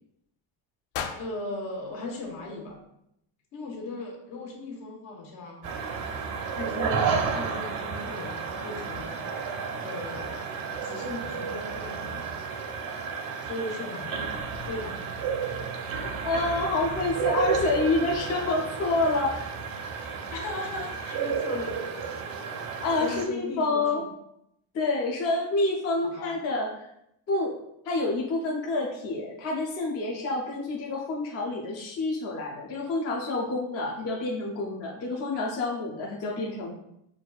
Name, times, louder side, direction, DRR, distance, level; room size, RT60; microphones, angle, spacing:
sound 1, 0.9-3.1, left 7 dB, 85° left, 0.6 m, -40 dB
voice 1, 1.2-2.8 3.5-5.7 6.0-10.5 10.8-12.3 13.4-14.4 14.7-15.0 20.3-21.8 22.7-24.0 26.0-26.4, left 2 dB, 65° left, -1 dB, 1.2 m, -38 dB
sound 2, 5.6-23.2, right 6 dB, 45° right, 0.5 m, -32 dB
voice 2, 16.2-19.5 22.8-24.0 24.7-26.9 27.3-27.5 27.8-36.7, left 2 dB, 35° left, -2 dB, 0.4 m, -28 dB
6.2 x 2.4 x 2.3 m, 0.79 s
cardioid pair, 175°, 49 cm